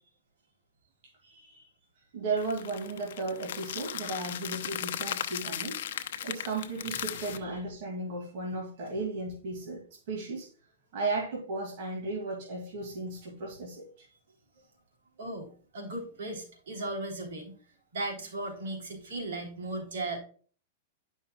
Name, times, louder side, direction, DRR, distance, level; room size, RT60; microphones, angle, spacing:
voice 1, 1.2-1.7 2.1-5.8 6.2-10.5 10.9-14.1, right 3 dB, 55° right, 2.2 m, -35 dB
sound 1, 2.4-7.4, left 10 dB, 70° left, 0.6 m, -37 dB
voice 2, 15.2-17.5 17.9-20.2, right 2 dB, 80° right, 3.3 m, -37 dB
11.0 x 5.5 x 2.3 m
supercardioid pair, 155°, 0 cm